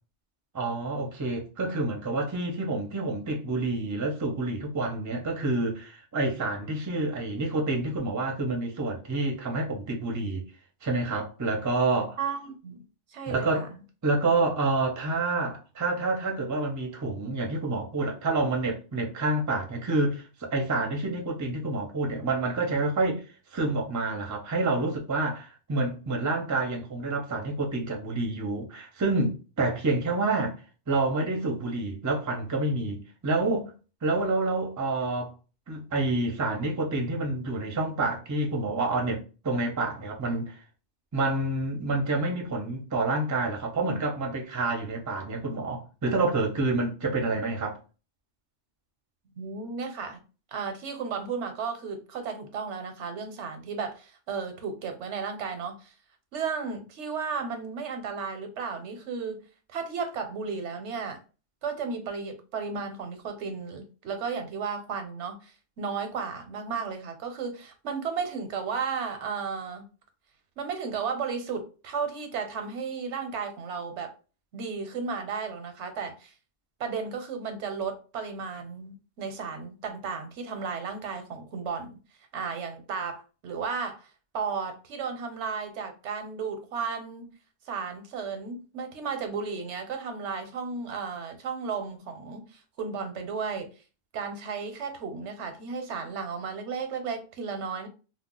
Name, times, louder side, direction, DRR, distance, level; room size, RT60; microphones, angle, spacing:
voice 1, 0.5-10.5 10.8-12.2 13.3-13.7 14.0-23.2 23.5-30.6 30.9-33.7 34.0-35.3 35.7-40.6 41.1-47.8, right 2 dB, 25° right, 0.4 m, -28 dB
voice 2, 12.2-12.8 13.1-13.7 49.4-50.2 50.5-55.9 56.3-59.4 59.7-61.2 61.6-69.9 70.6-74.1 74.5-76.3 76.8-81.9 82.3-87.3 87.7-93.7 94.1-97.9, right 5 dB, 85° right, 1.0 m, -34 dB
2.3 x 2.1 x 3.7 m
omnidirectional pair, 1.2 m